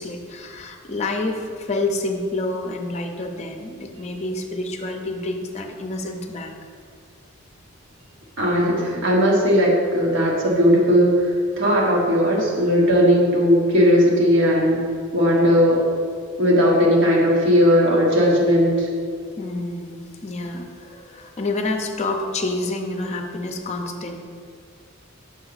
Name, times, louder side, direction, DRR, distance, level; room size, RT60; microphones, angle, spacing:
voice 1, 0.0-6.5 12.8-12.9 19.4-24.2, left 2 dB, 30° left, 3 dB, 0.6 m, -28 dB
voice 2, 8.4-11.3 11.6-14.8 15.1-15.9 16.4-18.9, equal, 60° right, -3 dB, 1.3 m, -17 dB
6.3 x 4.5 x 3.9 m, 2.1 s
head